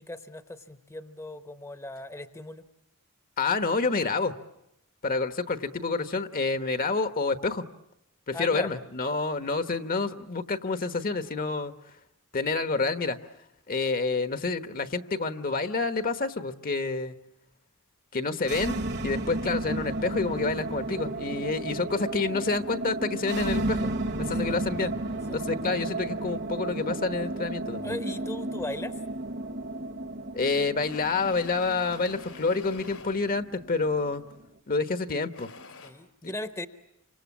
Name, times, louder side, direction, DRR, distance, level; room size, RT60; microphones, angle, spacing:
voice 1, 0.0-2.6 8.3-8.8 24.5-24.6 25.3-25.4 27.8-29.0 35.8-36.7, left 2 dB, 15° left, 10 dB, 1.0 m, -38 dB
voice 2, 3.4-4.3 5.0-7.6 8.3-11.7 12.3-13.2 13.7-17.2 18.1-23.9 24.2-24.9 25.3-27.9 30.3-34.2 34.7-35.5 36.2-36.3, left 3 dB, 40° left, 11 dB, 1.1 m, -28 dB
sound 1, 18.4-34.5, right 2 dB, 55° right, 1.5 m, -33 dB
sound 2, 30.8-33.2 34.1-34.3 35.0-35.9, left 4 dB, 85° left, 3.5 m, -47 dB
29.5 x 26.0 x 7.3 m, 0.85 s
head